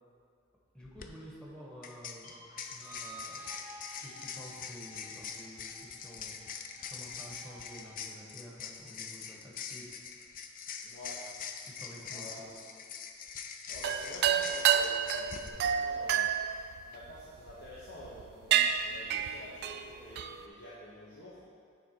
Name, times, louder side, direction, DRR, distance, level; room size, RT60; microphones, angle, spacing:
voice 1, 0.7-2.3 2.7-3.4 4.0-10.2 11.6-12.9, equal, 5° left, -5 dB, 1.2 m, -50 dB
sound 1, 0.8-1.1 1.8-15.5, left 7 dB, 45° left, 0.4 m, -44 dB
sound 2, 2.2-8.1, right 1 dB, 80° left, 1.6 m, -52 dB
voice 2, 10.8-11.2 12.1-12.4 13.7-16.3 16.9-21.4, left 1 dB, 60° left, -9 dB, 1.1 m, -49 dB
sound 3, 13.8-17.5 18.0-18.2 18.5-20.4, right 8 dB, 55° right, 0.3 m, -29 dB
9.1 x 3.7 x 4.6 m, 2.2 s
head